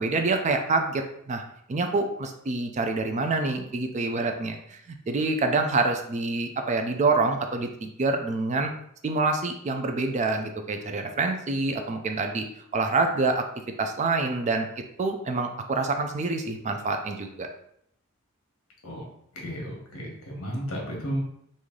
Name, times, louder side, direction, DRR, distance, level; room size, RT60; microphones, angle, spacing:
voice 1, 0.0-1.4 1.7-8.7 9.0-12.5 12.7-13.4 13.8-14.7 15.0-17.5, right 3 dB, 35° right, 5 dB, 0.4 m, -26 dB
voice 2, 19.3-21.2, equal, 70° left, -1 dB, 1.2 m, -33 dB
3.1 x 2.6 x 3.7 m, 0.71 s
head